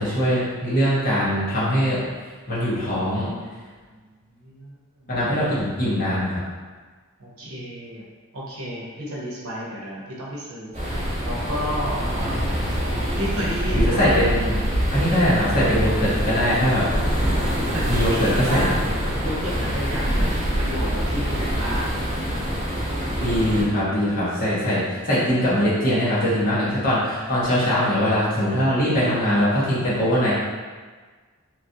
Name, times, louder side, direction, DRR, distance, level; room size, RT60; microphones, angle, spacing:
voice 1, 0.0-2.0 2.5-3.3 5.1-6.4 12.3-12.6 13.8-14.5 14.9-16.8 17.9-18.7 23.2-30.3, equal, 40° left, -9 dB, 1.0 m, -22 dB
voice 2, 4.3-5.2 7.2-8.0 8.3-12.6 13.2-14.1 17.6-18.8 19.2-22.4, equal, 75° right, -5 dB, 0.8 m, -32 dB
sound 1, 10.7-23.6, equal, 35° right, 0.9 m, -25 dB
3.0 x 2.5 x 2.7 m, 1.4 s
head